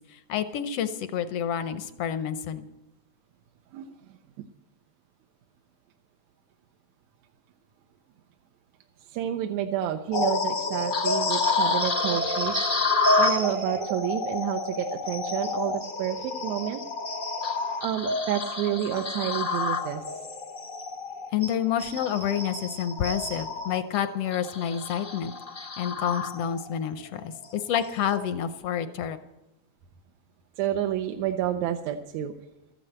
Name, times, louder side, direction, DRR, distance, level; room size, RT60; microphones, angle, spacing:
voice 1, 0.1-2.7 21.3-25.3 25.8-29.2, left 9 dB, 75° left, 10 dB, 1.4 m, -29 dB
voice 2, 3.7-4.5 9.0-12.6 13.2-16.8 17.8-20.0 30.6-32.3, right 11 dB, 75° right, 5 dB, 1.9 m, -29 dB
sound 1, 10.1-26.8 27.2-27.4 28.0-28.2, left 3 dB, 45° left, 0.6 m, -29 dB
13.5 x 9.2 x 7.9 m, 0.95 s
omnidirectional pair, 3.4 m